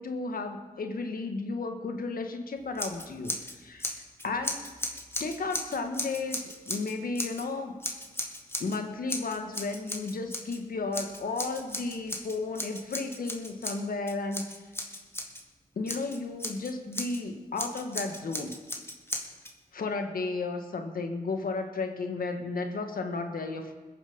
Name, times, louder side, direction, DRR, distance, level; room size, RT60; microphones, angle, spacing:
voice 1, 0.0-3.9 4.2-4.8 5.2-7.8 8.6-14.5 15.7-18.6 19.7-23.7, left 3 dB, 70° left, 6 dB, 1.6 m, -33 dB
Scissors, 2.7-3.5 3.8-7.4 7.8-8.8 9.1-10.6 10.9-15.4 15.9-17.2 17.6-19.5, left 1 dB, 15° left, 1.9 m, -36 dB
20.5 x 7.2 x 5.5 m, 1.3 s
cardioid pair, 50°, 16 cm